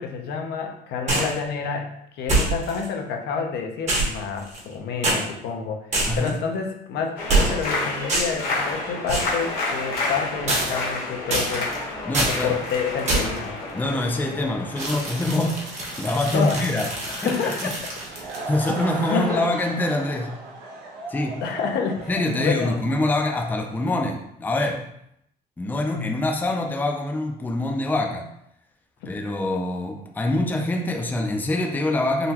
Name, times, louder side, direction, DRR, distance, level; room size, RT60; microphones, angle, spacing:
voice 1, 0.0-1.9 2.1-11.7 12.3-13.6 16.3-16.6 17.1-17.9 19.1-19.4 21.4-22.8 25.9-26.2, left 6 dB, 75° left, 2 dB, 0.6 m, -28 dB
sound 1, 1.1-1.4 2.3-2.9 3.9-4.7 5.0-5.2 5.9-6.4 7.3-7.7 8.1-8.5 9.1-9.4 10.5-11.0 11.3-11.8 12.1-12.4 13.1-13.4 14.8-18.7, right 2 dB, 45° right, 1.0 m, -25 dB
sound 2, 7.2-16.8, left 2 dB, 60° left, 1.0 m, -31 dB
voice 2, 12.1-12.6 13.7-15.7 16.0-16.9 17.2-17.7 18.5-20.3 21.1-21.4 22.1-24.8 25.6-28.3 29.1-32.3, left 2 dB, 10° left, 2 dB, 0.4 m, -25 dB
Laughter / Crowd, 17.8-24.1, right 2 dB, 80° right, 0.7 m, -36 dB
3.8 x 2.2 x 2.8 m, 0.76 s
cardioid pair, 110°, 17 cm